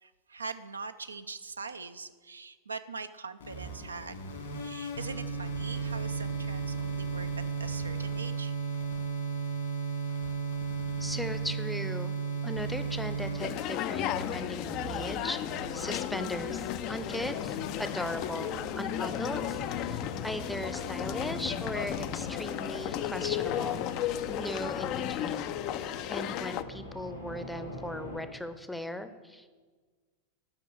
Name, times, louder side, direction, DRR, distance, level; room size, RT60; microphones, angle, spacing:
voice 1, 0.0-4.2 4.6-8.6, right 4 dB, 75° right, 10 dB, 0.4 m, -42 dB
sound 1, 3.4-22.9, right 5 dB, 65° left, 2.1 m, -36 dB
voice 2, 11.0-12.1 12.4-15.4 15.7-23.9 24.3-29.5, left 1 dB, 5° left, 10 dB, 0.7 m, -38 dB
sound 2, 13.4-26.6, left 11 dB, 40° left, 0.4 m, -34 dB
sound 3, 17.0-28.2, left 1 dB, 85° left, 2.6 m, -45 dB
8.8 x 6.0 x 7.7 m, 1.4 s
figure-of-eight pair, 90°, 0 cm